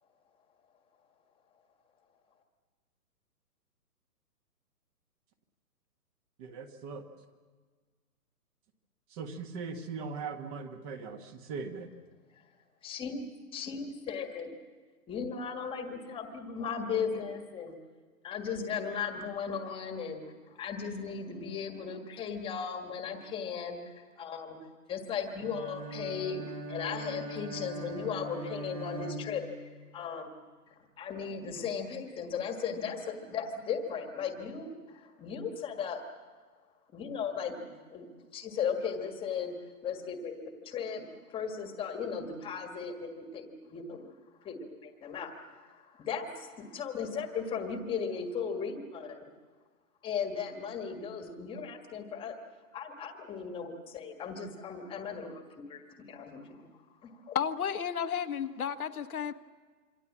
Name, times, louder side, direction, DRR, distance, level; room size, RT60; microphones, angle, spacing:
voice 1, 6.4-7.0 9.1-11.9, right 5 dB, 25° right, 7 dB, 1.5 m, -40 dB
voice 2, 12.8-13.2 13.5-14.5 15.1-17.7 18.2-24.6 24.9-29.6 29.9-30.3 31.0-36.0 36.9-39.5 39.8-44.1 44.4-49.2 50.0-52.4 52.7-56.7 57.0-57.4, left 6 dB, 10° left, 5 dB, 1.7 m, -37 dB
Bowed string instrument, 25.4-30.0, right 1 dB, 85° right, 4.8 m, -41 dB
voice 3, 57.3-59.3, left 8 dB, 65° left, 7 dB, 1.4 m, -32 dB
26.5 x 24.5 x 7.4 m, 1.5 s
hypercardioid pair, 150°, 47 cm